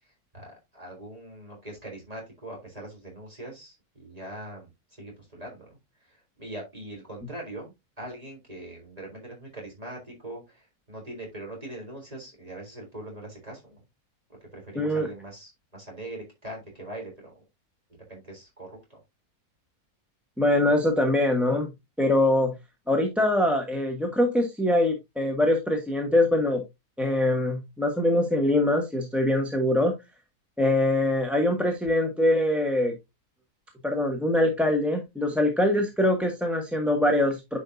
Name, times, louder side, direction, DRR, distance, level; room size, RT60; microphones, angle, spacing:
voice 1, 0.0-13.8 14.5-17.4 17.9-19.0, right 1 dB, 25° right, 0 dB, 3.8 m, -42 dB
voice 2, 14.7-15.1 20.4-21.7 22.0-22.5 22.9-26.6 27.0-29.9 30.6-32.9 33.8-37.6, left 1 dB, ahead, 2 dB, 1.2 m, -23 dB
9.9 x 5.3 x 2.7 m, 0.21 s
omnidirectional pair, 1.7 m